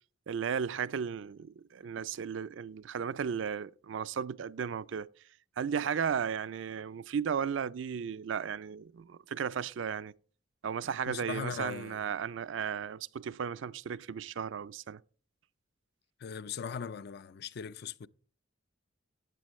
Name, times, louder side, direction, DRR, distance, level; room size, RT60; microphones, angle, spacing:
voice 1, 0.3-5.1 5.6-10.1 10.6-15.0, right 7 dB, 65° right, 0.4 m, -35 dB
voice 2, 11.1-12.2 16.2-18.1, left 6 dB, 55° left, 0.4 m, -39 dB
15.0 x 8.8 x 3.1 m
head